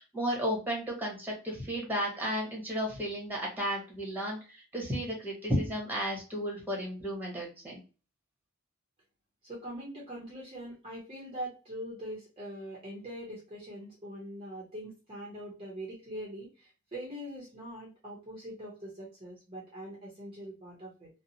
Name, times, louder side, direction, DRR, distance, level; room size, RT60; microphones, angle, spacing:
voice 1, 0.0-7.8, equal, 10° right, -1 dB, 1.1 m, -33 dB
voice 2, 9.4-21.1, equal, 30° right, -4 dB, 0.7 m, -42 dB
2.8 x 2.1 x 2.6 m, 0.32 s
head